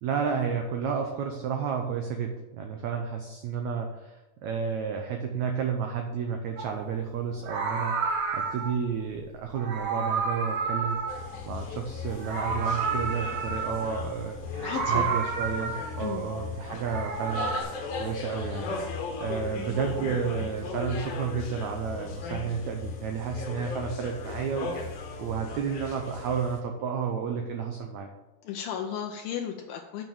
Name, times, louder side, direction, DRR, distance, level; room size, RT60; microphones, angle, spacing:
voice 1, 0.0-11.0 11.4-17.6 18.0-18.7 19.2-24.9 25.2-28.1, right 6 dB, 90° right, 3 dB, 1.6 m, -31 dB
Meow, 6.6-6.8 7.4-8.8 9.5-11.8 12.1-14.0 14.5-16.1 16.7-17.6, right 5 dB, 60° right, 2.1 m, -31 dB
sound 1, 11.1-26.6, left 5 dB, 65° left, 2.5 m, -37 dB
voice 2, 14.6-15.1 16.0-16.2 28.4-30.0, left 8 dB, 80° left, 3 dB, 2.3 m, -34 dB
9.0 x 5.4 x 7.0 m, 1.0 s
omnidirectional pair, 4.4 m